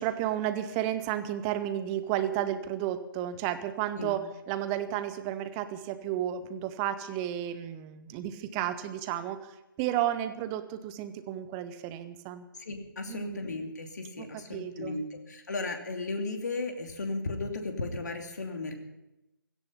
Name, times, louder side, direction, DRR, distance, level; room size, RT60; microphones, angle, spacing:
voice 1, 0.0-12.4 13.1-13.4 14.2-15.0, right 11 dB, 15° right, 11 dB, 0.8 m, -32 dB
voice 2, 12.6-18.8, left 3 dB, 55° left, 4 dB, 2.7 m, -35 dB
16.5 x 14.5 x 5.7 m, 0.95 s
figure-of-eight pair, 145°, 12 cm